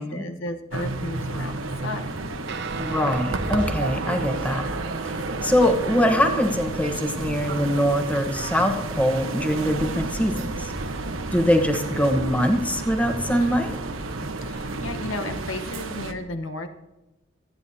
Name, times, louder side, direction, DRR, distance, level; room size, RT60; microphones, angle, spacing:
voice 1, 0.0-2.3 14.4-16.7, left 2 dB, 75° left, 6 dB, 1.1 m, -34 dB
sound 1, 0.7-16.1, right 2 dB, 85° right, 1.1 m, -31 dB
Guitar, 2.4-12.1, right 4 dB, 60° right, 0.8 m, -38 dB
voice 2, 2.8-4.6 5.4-10.7 11.3-13.7, equal, 5° left, 5 dB, 1.2 m, -23 dB
26.0 x 9.3 x 2.8 m, 1.0 s
head